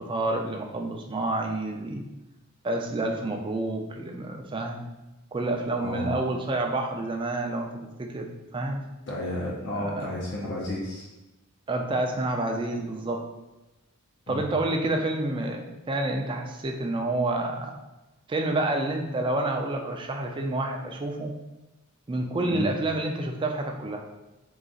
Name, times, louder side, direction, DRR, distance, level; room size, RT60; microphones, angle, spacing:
voice 1, 0.0-2.0 2.6-4.8 5.3-7.7 8.0-8.8 9.7-10.2 11.7-13.2 14.3-17.8 18.3-21.3 22.1-24.1, right 2 dB, 25° right, 3 dB, 0.4 m, -29 dB
voice 2, 5.8-6.1 9.1-11.1 14.3-14.5 22.4-22.7, left 1 dB, 55° left, -5 dB, 0.6 m, -32 dB
3.9 x 2.4 x 3.7 m, 1.0 s
head